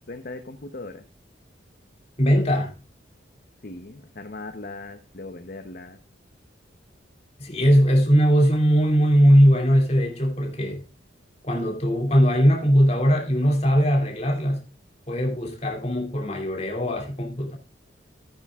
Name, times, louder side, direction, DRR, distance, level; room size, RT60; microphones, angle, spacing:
voice 1, 0.1-1.0 3.6-6.0, left 2 dB, 50° left, 0.8 m, -38 dB
voice 2, 2.2-2.7 7.4-10.8 11.4-14.7 15.1-17.6, equal, 35° left, 2.6 m, -20 dB
15.0 x 9.0 x 2.3 m
head